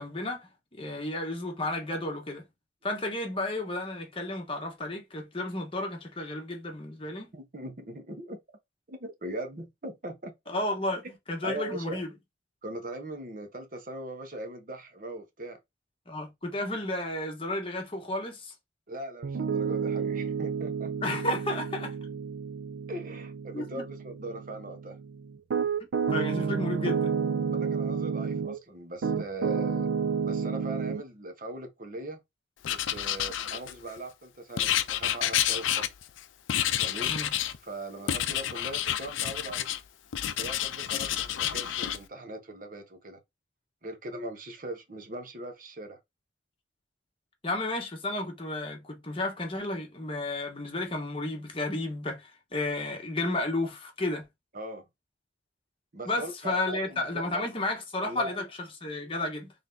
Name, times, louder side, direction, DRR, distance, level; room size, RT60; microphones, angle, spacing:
voice 1, 0.0-2.4 2.8-7.3 10.5-12.1 16.1-18.5 21.0-21.9 23.5-23.8 26.1-27.1 37.1-37.3 47.4-54.3 56.0-59.5, left 2 dB, 30° left, 1.1 m, -32 dB
voice 2, 7.3-8.4 8.9-10.3 11.4-12.0 12.6-15.6 18.9-20.9 22.9-25.0 27.4-29.9 30.2-32.2 32.7-35.9 36.8-37.2 37.6-39.7 40.3-43.2 43.8-46.0 54.5-54.8 55.9-57.4 58.0-58.5, right 1 dB, 45° right, 0.9 m, -40 dB
Piano, 19.2-28.6 29.0-31.0, right 6 dB, 80° right, 0.4 m, -30 dB
Writing, 32.6-34.0 34.6-36.2 36.5-37.6 38.1-39.8 40.1-42.0, left 11 dB, 80° left, 0.4 m, -29 dB
4.0 x 3.4 x 2.7 m
head